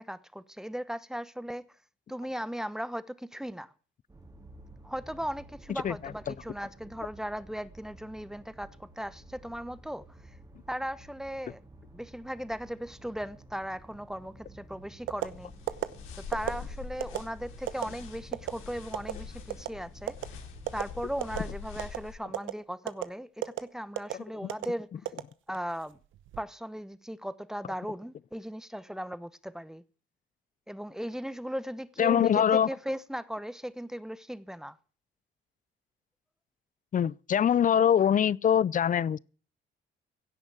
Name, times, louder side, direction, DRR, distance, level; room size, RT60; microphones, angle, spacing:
voice 1, 0.0-1.6 2.1-3.7 4.8-10.4 10.7-11.6 11.9-15.5 16.2-20.1 20.7-24.9 25.5-26.0 26.4-29.8 30.7-34.8, equal, 5° right, 0.9 m, -37 dB
sound 1, 4.1-21.4, right 2 dB, 20° right, 3.0 m, -53 dB
voice 2, 5.7-6.3 24.1-24.5 32.0-32.7 36.9-39.2, left 9 dB, 40° left, 0.6 m, -24 dB
sound 2, 15.1-15.3 15.7-15.9 16.3-16.6 17.0-17.2 17.7-17.9 18.3-18.5 18.9-19.1 19.5-19.7 20.1-20.3 20.7-20.8 21.2-21.5 21.8-22.0 22.3-22.5 22.9-23.1 23.4-23.6 24.0-24.1 24.5-24.7 25.1-25.7 26.1-26.4, right 14 dB, 80° right, 1.0 m, -31 dB
sound 3, 15.2-22.2, left 6 dB, 90° left, 3.3 m, -44 dB
16.5 x 6.1 x 9.1 m
cardioid pair, 90°, 20 cm